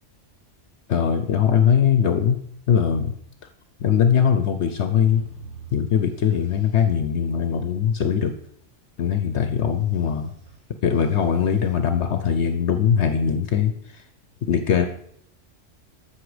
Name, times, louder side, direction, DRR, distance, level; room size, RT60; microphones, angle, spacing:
voice 1, 0.9-2.4 2.7-3.1 3.8-5.2 5.7-8.3 9.0-10.3 10.8-14.0 14.4-14.8, left 8 dB, 65° left, 8 dB, 1.0 m, -21 dB
sound 1, 5.0-6.9 9.7-11.7, right 4 dB, 60° right, 3.3 m, -46 dB
14.0 x 6.3 x 5.0 m, 0.69 s
omnidirectional pair, 1.3 m